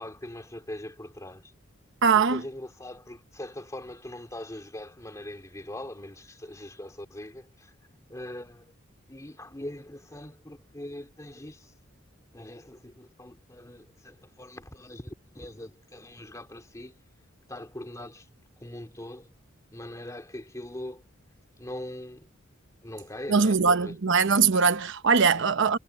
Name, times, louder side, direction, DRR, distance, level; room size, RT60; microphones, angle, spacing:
voice 1, 0.0-1.5 2.3-7.7 8.1-8.7 9.1-11.7 12.3-16.9 17.5-18.3 18.6-19.3 19.7-21.0 21.6-22.3 22.8-23.9 25.4-25.5, left 1 dB, 15° left, 2.4 m, -41 dB
voice 2, 2.0-2.4 23.3-25.8, right 5 dB, 65° right, 0.9 m, -21 dB
head